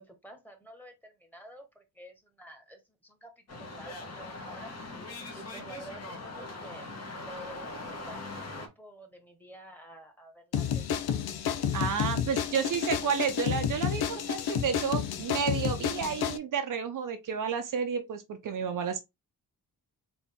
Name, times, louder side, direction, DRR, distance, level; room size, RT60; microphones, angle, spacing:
voice 1, 0.0-4.8 5.3-6.9 7.2-11.0, equal, 5° left, 1.3 m, -50 dB
sound 1, 3.5-8.7, left 2 dB, 45° left, 1.3 m, -41 dB
sound 2, 10.5-16.4, left 8 dB, 85° left, 0.6 m, -30 dB
voice 2, 11.7-19.0, right 6 dB, 60° right, 0.7 m, -31 dB
4.0 x 2.8 x 3.5 m
cardioid pair, 110°, 37 cm